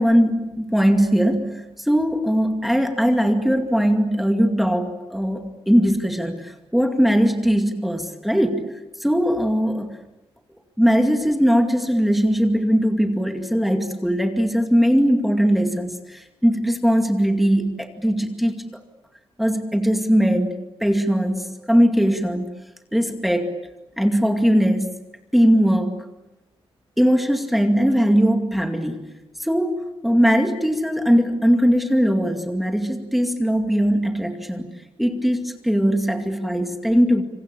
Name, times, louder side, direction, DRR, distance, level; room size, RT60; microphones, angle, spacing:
voice 1, 0.0-10.0 10.8-18.6 19.4-20.5 20.8-22.5 22.9-23.5 24.0-24.9 25.3-26.0 27.0-29.0 29.4-29.8 30.0-34.7 35.0-37.2, equal, ahead, 5 dB, 2.3 m, -20 dB
27.0 x 26.0 x 8.4 m, 0.99 s
wide cardioid pair, 135°, 10 cm